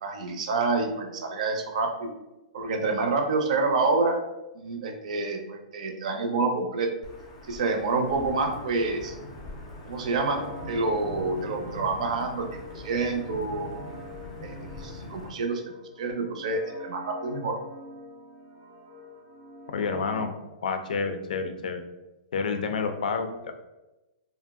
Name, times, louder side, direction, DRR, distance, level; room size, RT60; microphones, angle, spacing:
voice 1, 0.0-2.1 2.5-4.2 4.5-6.9 7.5-9.2 9.8-13.7 14.4-15.6 16.0-17.6, right 3 dB, 60° right, 4 dB, 0.5 m, -28 dB
Wind / Thunder / Rain, 7.0-15.3, left 1 dB, 20° left, 0.5 m, -42 dB
sound 1, 10.0-20.3, left 1 dB, 90° right, 0.9 m, -46 dB
voice 2, 19.7-20.3 20.6-21.8 22.3-23.5, left 5 dB, 90° left, 7 dB, 0.4 m, -29 dB
2.6 x 2.0 x 3.4 m, 1.0 s
hypercardioid pair, 165°, 4 cm